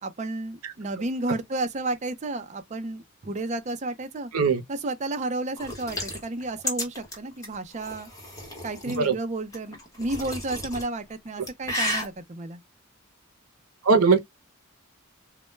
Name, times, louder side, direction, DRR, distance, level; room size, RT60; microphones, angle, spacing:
voice 1, 0.0-4.3 4.7-8.1 8.6-12.6, right 2 dB, 35° right, 0.5 m, -32 dB
sound 1, 5.6-9.0 9.5-10.9 11.3-12.1, left 1 dB, 15° left, 0.9 m, -32 dB
voice 2, 8.9-9.2 13.8-14.2, right 4 dB, 90° right, 0.6 m, -20 dB
2.1 x 2.1 x 3.1 m
head